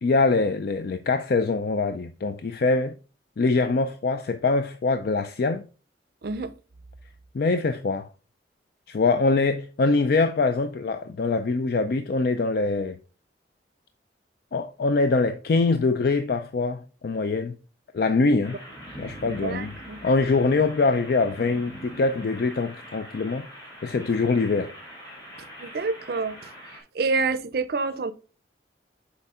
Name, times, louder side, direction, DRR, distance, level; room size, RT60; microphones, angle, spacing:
voice 1, 0.0-2.9 3.4-5.6 7.3-8.1 8.9-13.0 14.5-17.5 17.9-18.6 19.0-19.7 20.0-23.5 23.8-24.7, left 3 dB, 55° left, 0.4 m, -23 dB
sound 1, 18.4-26.8, equal, 25° left, 3.3 m, -43 dB
voice 2, 19.2-20.0 25.6-26.5 26.9-28.1, right 4 dB, 60° right, 0.5 m, -28 dB
6.8 x 4.5 x 3.6 m
head